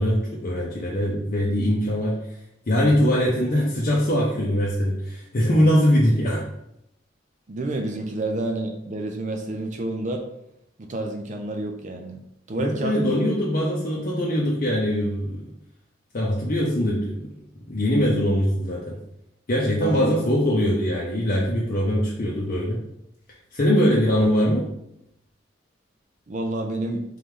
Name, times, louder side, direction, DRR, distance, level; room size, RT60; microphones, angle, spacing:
voice 1, 0.0-2.2 2.7-6.5 12.6-15.4 16.1-17.3 17.7-19.0 19.5-22.8 23.5-24.7, equal, 50° left, -4 dB, 0.7 m, -22 dB
voice 2, 7.5-10.2 10.8-12.2 12.5-13.2 19.8-20.1 26.3-27.0, right 2 dB, 40° right, 3 dB, 0.5 m, -29 dB
3.9 x 3.2 x 3.6 m, 0.79 s
head